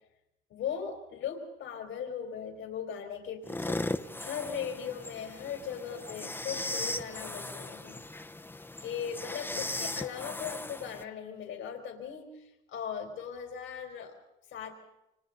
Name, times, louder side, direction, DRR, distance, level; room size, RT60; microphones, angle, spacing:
voice 1, 0.5-3.8 4.2-8.0 8.8-14.1 14.5-14.7, left 7 dB, 85° left, 2 dB, 4.0 m, -38 dB
sound 1, 3.4-11.0, left 2 dB, 10° left, 0.9 m, -38 dB
29.0 x 25.5 x 4.0 m, 0.89 s
cardioid pair, 90°, 20 cm